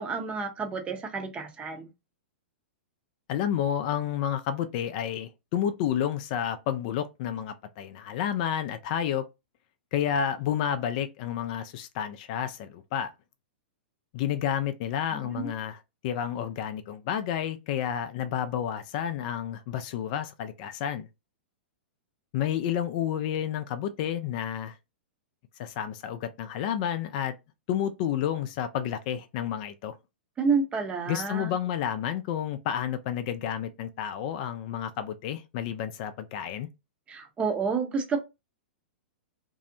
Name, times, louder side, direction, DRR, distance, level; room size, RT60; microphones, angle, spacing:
voice 1, 0.0-1.9 15.1-15.5 30.4-31.5 37.1-38.2, right 5 dB, 20° right, 0.6 m, -29 dB
voice 2, 3.3-9.3 9.9-13.1 14.1-21.1 22.3-24.7 25.6-27.3 27.7-29.9 31.1-36.7, left 9 dB, 50° left, 0.3 m, -30 dB
2.6 x 2.0 x 2.5 m
hypercardioid pair, 115°, 6 cm